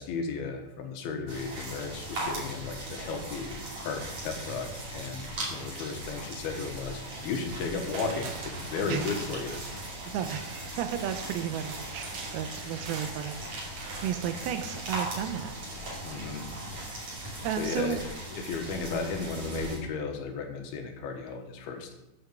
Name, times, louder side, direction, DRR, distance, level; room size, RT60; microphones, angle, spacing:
voice 1, 0.0-3.6 3.8-9.6 16.0-16.5 17.6-18.0 18.3-21.9, left 4 dB, 90° left, 3 dB, 3.2 m, -34 dB
sound 1, 1.3-19.8, right 1 dB, 40° right, 3.1 m, -39 dB
sound 2, 7.6-15.8 16.1-16.2, right 4 dB, 65° right, 2.5 m, -45 dB
voice 2, 10.1-13.6 14.0-16.5 17.4-18.0, right 9 dB, 85° right, 7 dB, 2.5 m, -34 dB
8.8 x 5.8 x 6.6 m, 0.95 s
omnidirectional pair, 4.3 m